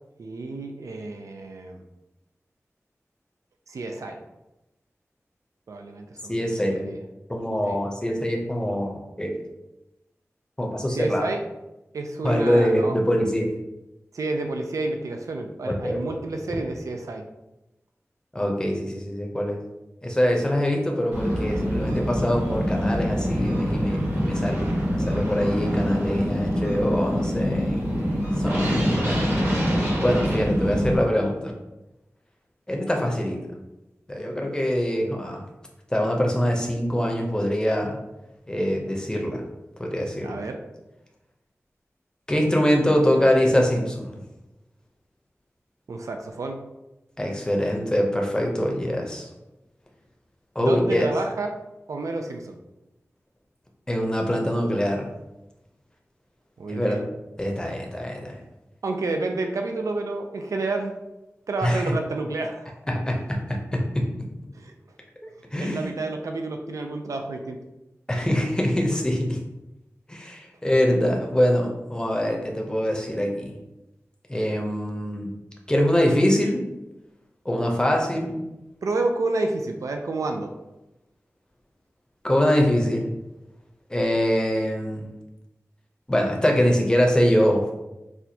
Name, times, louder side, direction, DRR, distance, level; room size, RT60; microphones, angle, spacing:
voice 1, 0.2-1.8 3.7-4.2 5.7-6.4 6.7-7.0 7.7-7.8 10.9-11.4 11.9-13.0 14.1-17.3 40.2-40.6 45.9-46.6 50.6-51.6 51.9-52.6 56.6-57.1 58.8-61.0 61.5-62.7 64.5-64.7 65.6-67.6 78.8-80.5, right 2 dB, 85° right, 4 dB, 0.4 m, -29 dB
voice 2, 6.3-6.9 7.3-9.4 10.6-11.3 12.2-13.5 15.7-16.0 18.3-19.6 20.0-27.9 28.4-29.2 30.0-31.5 32.7-33.4 34.1-35.4 35.9-38.0 38.5-39.4 39.8-40.4 42.3-44.2 47.2-49.3 50.6-51.1 53.9-55.1 56.7-57.0 57.4-58.4 61.6-61.9 62.9-64.0 65.5-65.9 68.1-69.4 70.1-73.6 74.3-75.3 75.7-76.7 77.4-78.5 82.2-83.1 83.9-85.1 86.1-87.7, equal, 15° left, 1 dB, 0.6 m, -24 dB
sound 1, 21.1-30.9, equal, 50° right, 1.1 m, -25 dB
4.2 x 2.3 x 2.7 m, 0.97 s
wide cardioid pair, 75°, 5 cm